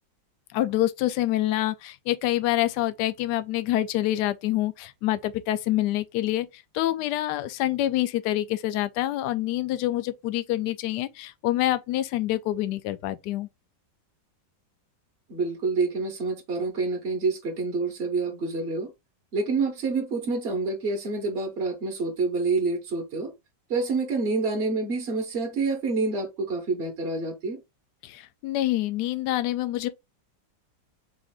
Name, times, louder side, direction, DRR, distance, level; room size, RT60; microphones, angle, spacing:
voice 1, 0.5-13.5 28.0-29.9, left 14 dB, 75° left, 1.0 m, -26 dB
voice 2, 15.3-18.9 19.3-23.3 23.7-27.6, right 3 dB, 45° right, 0.9 m, -27 dB
4.8 x 2.5 x 3.6 m
omnidirectional pair, 2.1 m